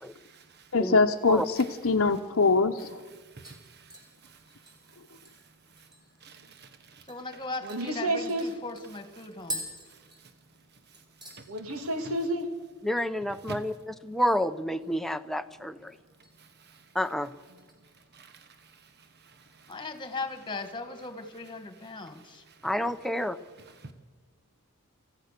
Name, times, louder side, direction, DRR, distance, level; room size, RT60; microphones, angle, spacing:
voice 1, 0.0-0.7 1.6-1.7 3.1-5.4 5.7-5.9 6.2-7.1 9.9-10.3 10.9-11.5 13.5-13.6 16.4-16.9 19.2-19.8 22.1-22.7 23.8-23.9, right 3 dB, 50° right, 1.1 m, -50 dB
voice 2, 0.7-3.0, left 3 dB, 60° left, 0.9 m, -23 dB
sound 1, 3.4-6.3 6.6-6.7 7.1-7.2 7.7-10.7 10.9-11.4 11.8-12.2 12.5-12.6 14.7-15.3 15.6-16.3 16.7-17.0 17.6-18.5 18.8-18.9, equal, 20° right, 5.2 m, -45 dB
voice 3, 7.1-9.6 19.7-22.4, left 3 dB, 20° left, 1.8 m, -38 dB
voice 4, 7.6-8.5 11.5-12.5, right 1 dB, 70° right, 2.3 m, -30 dB
voice 5, 12.8-16.0 16.9-17.3 22.6-23.4, equal, ahead, 0.7 m, -29 dB
28.5 x 15.5 x 6.7 m
head